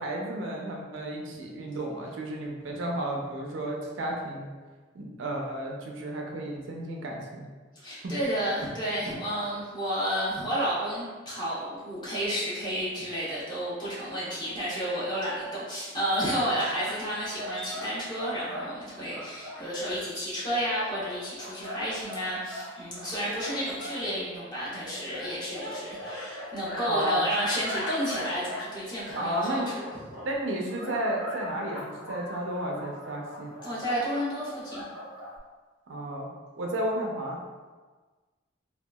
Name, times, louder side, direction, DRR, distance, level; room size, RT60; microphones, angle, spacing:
voice 1, 0.0-4.5 4.9-7.5 8.0-8.1 26.9-27.2 29.2-29.7 30.2-33.5 35.9-36.3 36.6-37.4, right 1 dB, 80° right, -1 dB, 0.5 m, -32 dB
voice 2, 7.7-29.9 33.6-34.8, equal, 25° left, -9 dB, 0.9 m, -31 dB
sound 1, 16.7-18.7 19.1-20.0 20.5-24.1 24.8-28.7 29.1-30.3 30.7-35.4, left 1 dB, 75° left, 1.3 m, -40 dB
2.7 x 2.3 x 2.2 m, 1.4 s
head